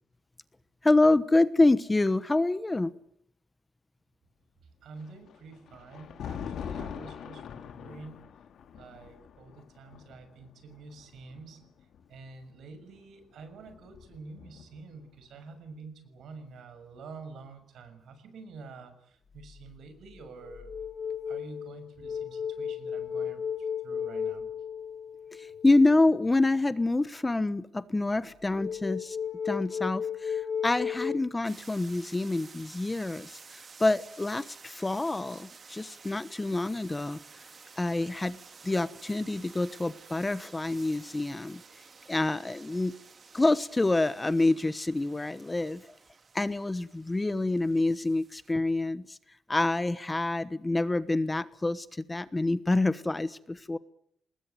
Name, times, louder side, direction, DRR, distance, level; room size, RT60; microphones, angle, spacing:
voice 1, 0.8-2.9 25.6-29.2 29.4-37.2 37.8-38.4 38.6-41.6 42.1-42.9 43.3-45.8 46.3-49.2 49.5-53.8, left 2 dB, 15° left, 14 dB, 1.1 m, -27 dB
voice 2, 4.8-8.2 8.7-11.6 12.1-20.7 21.3-24.5, right 4 dB, 80° right, 10 dB, 6.4 m, -48 dB
Thunder, 5.0-12.2 13.2-15.0, left 8 dB, 70° left, 2.7 m, -43 dB
sound 1, 19.4-19.7 20.2-26.1 28.6-31.2, left 7 dB, 45° left, 1.4 m, -35 dB
sound 2, 31.4-48.5, right 5 dB, 35° right, 1.9 m, -52 dB
26.5 x 20.5 x 9.3 m, 0.70 s
cardioid pair, 135°, 0 cm